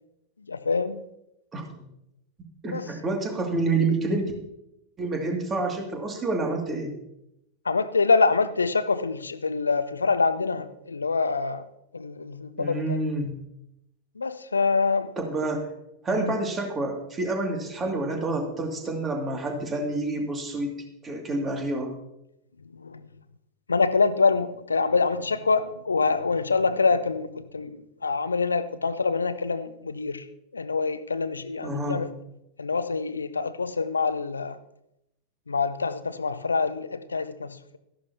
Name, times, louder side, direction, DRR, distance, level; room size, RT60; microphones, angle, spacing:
voice 1, 0.5-1.0 2.6-2.8 7.7-11.6 11.9-13.0 14.2-15.1 16.1-16.3 22.8-23.0 23.7-27.8 28.0-30.2 30.5-32.1 32.6-34.6 35.5-37.8, left 4 dB, 75° left, 14 dB, 0.6 m, -25 dB
voice 2, 2.6-4.3 5.0-6.9 12.6-13.4 15.2-15.7 16.0-20.8 21.0-21.9 31.6-32.1, right 2 dB, 20° right, 2 dB, 2.4 m, -28 dB
13.5 x 11.0 x 2.8 m, 0.84 s
figure-of-eight pair, 90°, 0 cm